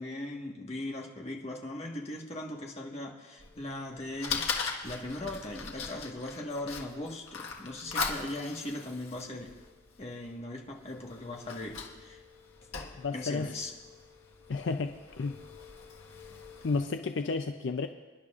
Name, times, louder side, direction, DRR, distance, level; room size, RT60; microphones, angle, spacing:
voice 1, 0.0-4.4 4.8-9.5 10.0-12.2 13.1-13.7, left 1 dB, 30° left, -1 dB, 1.4 m, -39 dB
Fire, 3.4-16.8, left 5 dB, 90° left, 1.5 m, -40 dB
voice 2, 13.0-13.5 14.5-15.4 16.6-17.9, left 4 dB, 60° left, 7 dB, 0.4 m, -32 dB
27.5 x 10.5 x 2.5 m, 1.3 s
head